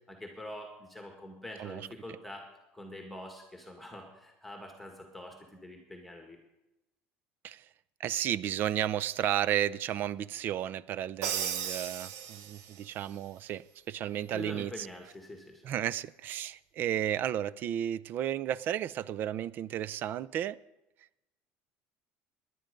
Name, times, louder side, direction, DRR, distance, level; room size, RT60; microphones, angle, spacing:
voice 1, 0.1-2.4 2.7-6.4 14.3-15.6, left 1 dB, ahead, 1.9 m, -45 dB
voice 2, 8.0-14.9 15.6-20.6, right 11 dB, 45° right, 0.5 m, -33 dB
Crash cymbal, 11.2-12.9, right 9 dB, 75° right, 1.2 m, -35 dB
18.5 x 11.0 x 5.2 m
cardioid pair, 145°, 5 cm